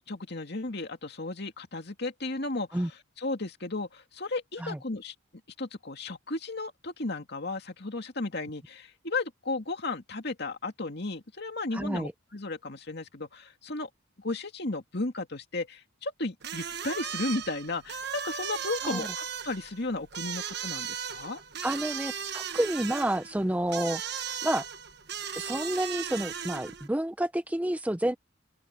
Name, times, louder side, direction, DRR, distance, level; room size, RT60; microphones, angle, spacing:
voice 1, 0.0-5.1 5.6-13.9 14.2-21.4, left 2 dB, 55° left, 2.4 m, -34 dB
voice 2, 11.7-12.1 18.8-19.1 21.6-24.0 24.4-24.7 25.3-28.2, right 1 dB, 5° right, 0.4 m, -29 dB
sound 1, 16.4-26.9, right 8 dB, 55° right, 1.3 m, -37 dB
open air
head